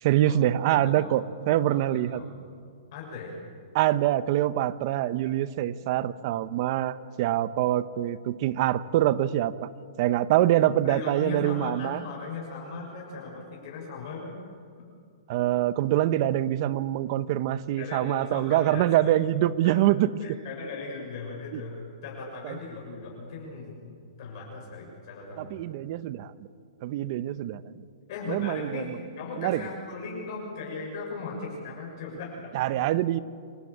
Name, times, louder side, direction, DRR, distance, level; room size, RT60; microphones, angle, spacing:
voice 1, 0.0-2.2 3.7-9.7 10.0-12.0 15.3-20.4 21.5-21.6 22.4-22.6 25.4-26.3 26.8-27.6 28.3-28.8 29.4-29.6 32.5-33.2, right 13 dB, 45° right, 15 dB, 0.9 m, -25 dB
voice 2, 0.7-1.2 1.7-2.3 2.9-3.4 10.8-14.4 14.8-14.9 17.8-18.8 19.6-19.8 20.2-25.5 28.1-32.6, left 4 dB, 55° left, -2 dB, 6.9 m, -38 dB
27.5 x 16.0 x 8.6 m, 2.2 s
hypercardioid pair, 145°, 3 cm